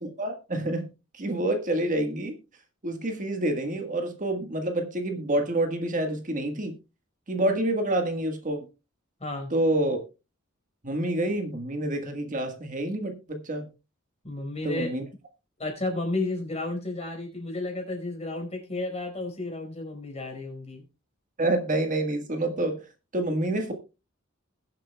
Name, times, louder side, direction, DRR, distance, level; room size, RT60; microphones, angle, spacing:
voice 1, 0.0-2.3 2.8-6.7 7.3-8.6 9.5-10.0 10.8-13.7 14.6-15.0 21.4-22.8 23.1-23.7, right 1 dB, 40° right, 5 dB, 1.5 m, -28 dB
voice 2, 9.2-9.5 14.2-14.9 15.6-20.8, left 2 dB, 30° left, 3 dB, 4.5 m, -32 dB
21.0 x 7.5 x 2.2 m, 0.28 s
head